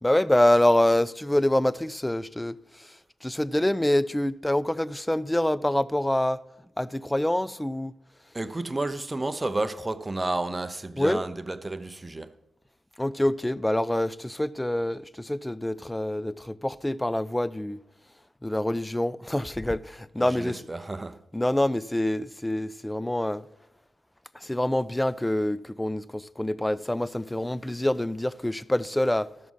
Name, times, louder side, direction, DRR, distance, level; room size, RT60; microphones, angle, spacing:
voice 1, 0.0-6.4 6.8-7.9 11.0-11.2 13.0-17.8 18.4-20.6 21.3-23.5 24.3-29.3, left 1 dB, 10° left, 0.4 m, -26 dB
voice 2, 8.3-12.4 20.2-21.2, right 2 dB, 25° right, 0.7 m, -31 dB
13.5 x 6.2 x 5.5 m
supercardioid pair, 45°, 0 cm